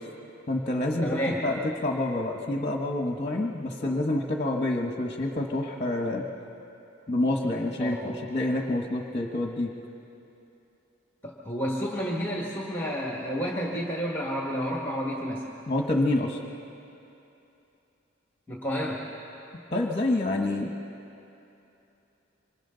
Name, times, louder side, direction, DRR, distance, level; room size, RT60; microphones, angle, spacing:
voice 1, 0.5-6.2 7.1-9.7 15.7-16.4 19.7-20.7, left 1 dB, 30° left, 1 dB, 1.2 m, -27 dB
voice 2, 1.0-1.4 7.8-8.2 11.2-15.4 18.5-19.0, equal, 10° left, -3 dB, 1.9 m, -30 dB
26.0 x 25.5 x 4.0 m, 2.8 s
head